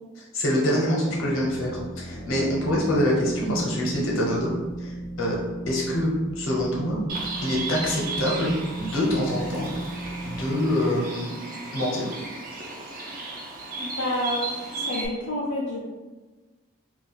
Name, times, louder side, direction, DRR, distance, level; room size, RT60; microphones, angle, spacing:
voice 1, 0.2-5.4 5.7-7.0 7.4-8.5 8.8-9.7 10.2-11.3 11.7-12.1, equal, 70° left, -3 dB, 0.8 m, -25 dB
sound 1, 0.9-12.4, right 1 dB, 80° right, 0.9 m, -37 dB
Bird, 7.1-15.1, right 3 dB, 40° right, 0.4 m, -35 dB
voice 2, 13.8-15.8, left 1 dB, 55° left, -6 dB, 0.5 m, -29 dB
2.4 x 2.3 x 4.0 m, 1.3 s
head